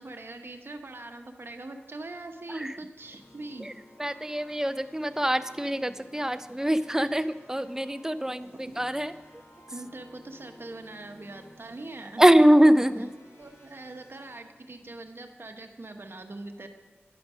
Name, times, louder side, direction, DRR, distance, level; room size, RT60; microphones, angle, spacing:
voice 1, 0.0-3.7 8.5-9.1 9.7-12.3 13.4-16.7, right 2 dB, 60° right, 6 dB, 0.9 m, -42 dB
sound 1, 3.0-14.4, left 1 dB, 90° left, 2.3 m, -55 dB
voice 2, 4.0-9.1 12.2-13.1, right 1 dB, 10° right, 12 dB, 0.5 m, -23 dB
10.0 x 5.2 x 6.1 m, 1.4 s
wide cardioid pair, 45°, 4 cm